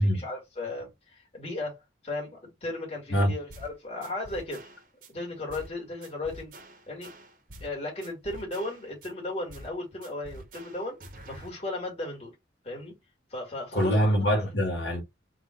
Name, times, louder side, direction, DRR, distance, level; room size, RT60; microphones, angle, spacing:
voice 1, 0.0-4.6 5.1-6.5 6.9-7.1 7.6-11.0 11.3-12.4 12.6-12.9 13.3-14.0, left 2 dB, 35° left, 2.1 m, -36 dB
sound 1, 3.5-3.7 4.0-5.1 5.5-5.7 6.0-7.7 8.0-9.1 9.5-9.8 10.0-11.5, right 1 dB, 50° right, 1.0 m, -47 dB
voice 2, 13.7-15.0, equal, 65° left, 1.8 m, -24 dB
3.8 x 2.5 x 4.4 m
head